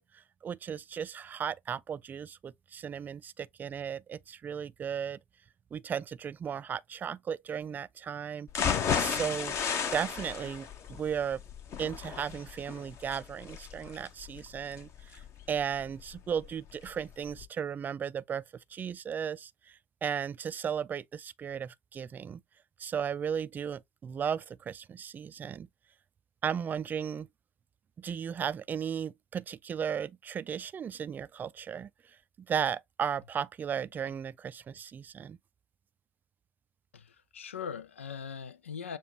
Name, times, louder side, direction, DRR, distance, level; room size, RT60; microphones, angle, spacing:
voice 1, 0.0-5.2 5.7-8.5 9.0-9.6 9.9-11.4 11.8-15.2 15.5-18.4 18.7-22.4 22.8-25.7 26.4-27.3 28.0-31.9 32.4-35.4, right 7 dB, 30° right, 0.3 m, -35 dB
sound 1, 8.5-16.5 16.9-17.0 17.3-17.4, left 7 dB, 45° left, 1.1 m, -34 dB
voice 2, 36.9-39.0, left 7 dB, 90° left, 0.5 m, -40 dB
6.9 x 2.4 x 3.0 m
hypercardioid pair, 80°, 7 cm